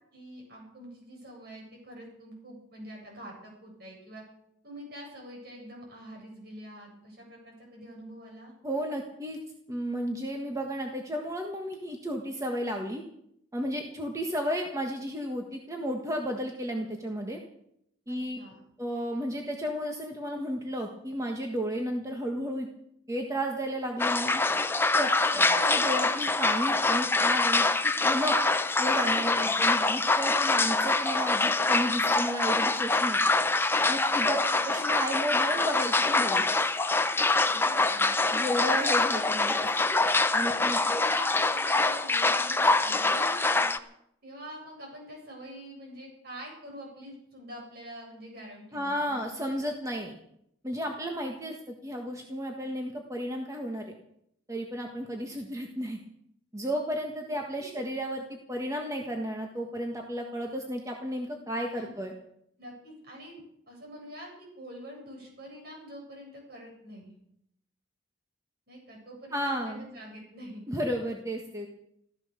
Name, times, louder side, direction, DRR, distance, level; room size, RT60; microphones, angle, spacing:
voice 1, 0.1-4.2 4.6-8.5 18.1-18.6 25.1-25.5 33.9-34.0 34.3-34.6 37.4-38.1 40.5-40.6 40.9-43.7 44.2-49.3 57.3-57.7 61.7-61.9 62.6-63.4 63.7-67.2 68.7-70.7, equal, 55° right, -1 dB, 8.0 m, -46 dB
voice 2, 8.6-9.4 9.7-13.0 13.5-17.4 18.1-18.4 18.8-22.7 23.1-24.4 24.9-28.4 28.8-33.2 33.9-36.4 38.3-39.6 40.3-41.0 48.7-50.1 50.6-53.9 54.5-56.0 56.5-62.1 69.3-69.8 70.7-71.7, equal, 15° right, 2 dB, 1.5 m, -33 dB
sound 1, 24.0-43.8, left 3 dB, 10° left, 0.7 m, -25 dB
15.0 x 14.5 x 6.7 m, 0.75 s
head